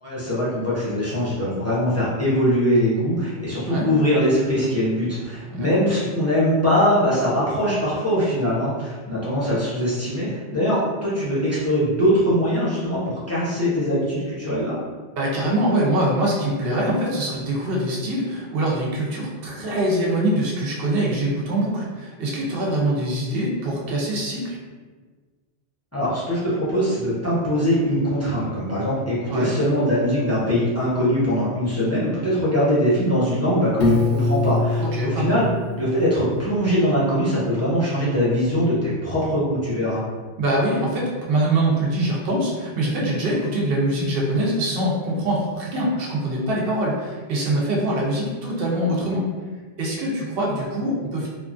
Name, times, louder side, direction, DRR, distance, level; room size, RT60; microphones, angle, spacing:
voice 1, 0.0-14.8 25.9-35.5 35.8-40.0, equal, 15° left, -10 dB, 0.6 m, -22 dB
voice 2, 15.2-24.6 29.3-29.5 34.8-35.4 40.4-49.3 49.8-51.3, right 1 dB, 60° right, -3 dB, 0.8 m, -23 dB
Piano, 33.8-36.7, left 2 dB, 85° left, 0.9 m, -24 dB
2.9 x 2.4 x 2.5 m, 1.4 s
omnidirectional pair, 1.2 m